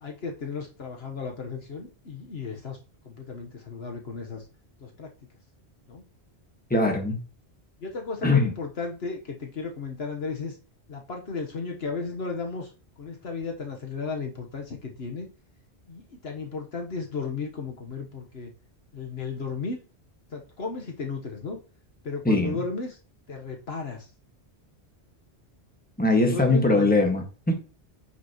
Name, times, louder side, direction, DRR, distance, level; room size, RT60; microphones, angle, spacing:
voice 1, 0.0-2.8 3.0-4.4 4.8-5.1 5.9-6.0 7.8-10.6 10.9-12.7 13.0-15.3 15.9-18.5 18.9-19.8 20.3-21.6 22.0-23.0 23.3-24.1 26.0-26.9, left 4 dB, 65° left, 1.5 m, -34 dB
voice 2, 6.7-7.2 8.2-8.5 22.2-22.6 26.0-27.5, left 2 dB, 10° left, 1.6 m, -21 dB
9.3 x 5.9 x 3.0 m
omnidirectional pair, 1.1 m